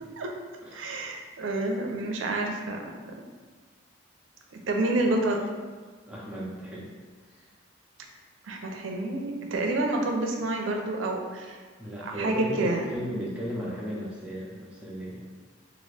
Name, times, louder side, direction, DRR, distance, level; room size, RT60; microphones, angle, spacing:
voice 1, 0.7-3.3 4.7-5.5 8.5-11.6 12.0-12.8, right 2 dB, 80° right, 2 dB, 0.5 m, -29 dB
voice 2, 6.1-6.9 7.3-7.5 11.8-15.2, equal, 5° right, -6 dB, 0.7 m, -35 dB
2.9 x 2.5 x 3.2 m, 1.4 s
head